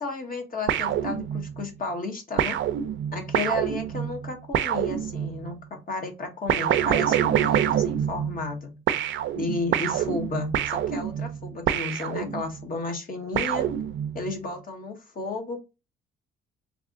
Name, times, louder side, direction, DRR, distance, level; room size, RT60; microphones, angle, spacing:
voice 1, 0.0-2.6 3.1-8.7 9.3-13.7 14.1-15.6, left 3 dB, 40° left, 3 dB, 1.5 m, -33 dB
sound 1, 0.7-1.7 2.4-5.5 6.5-8.6 8.9-12.6 13.3-14.3, right 10 dB, 65° right, 0.6 m, -26 dB
3.3 x 2.5 x 3.8 m, 0.27 s
cardioid pair, 80°, 21 cm